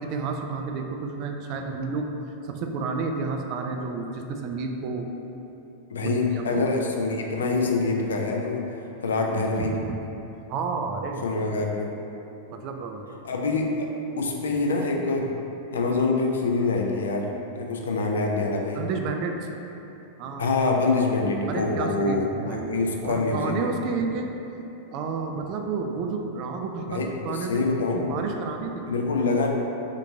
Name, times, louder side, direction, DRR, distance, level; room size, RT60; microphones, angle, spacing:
voice 1, 0.0-2.1 2.5-5.1 6.0-6.8 7.4-7.5 9.5-10.0 10.5-11.3 12.5-13.1 18.7-19.5 20.2-20.5 21.5-24.4 24.9-27.7 27.9-28.9, right 4 dB, 40° right, 3 dB, 0.3 m, -31 dB
voice 2, 5.9-8.6 9.0-9.7 11.2-11.9 13.2-13.9 14.2-15.3 15.7-17.3 17.6-18.8 20.4-23.6 26.9-28.1 28.9-29.5, left 3 dB, 65° left, 1 dB, 0.4 m, -25 dB
3.6 x 2.7 x 3.6 m, 3.0 s
figure-of-eight pair, 90°, 0 cm